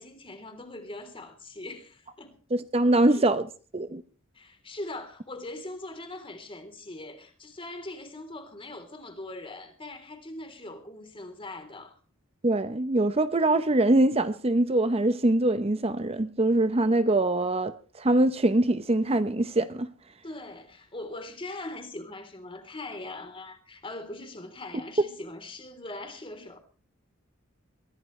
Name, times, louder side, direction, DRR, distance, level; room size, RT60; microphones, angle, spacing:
voice 1, 0.0-2.4 3.1-3.2 4.3-12.0 20.2-26.6, left 2 dB, 25° left, 3.4 m, -41 dB
voice 2, 2.5-3.5 3.7-4.0 12.4-19.9, right 2 dB, 30° right, 0.7 m, -23 dB
23.0 x 16.0 x 3.2 m
head